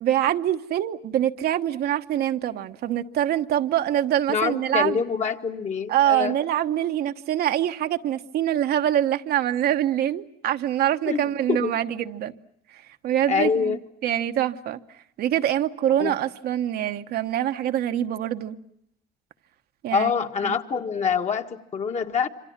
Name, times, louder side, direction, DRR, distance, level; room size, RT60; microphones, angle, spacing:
voice 1, 0.0-5.0 5.9-12.3 13.0-13.8 14.0-14.8 15.2-18.6 19.8-20.1 20.4-20.5, right 11 dB, 70° right, 1.1 m, -24 dB
voice 2, 4.3-6.4 11.1-11.7 13.3-13.8 16.0-16.1 19.9-22.3, left 6 dB, 45° left, 1.7 m, -25 dB
27.0 x 25.5 x 7.3 m
cardioid pair, 110°, 17 cm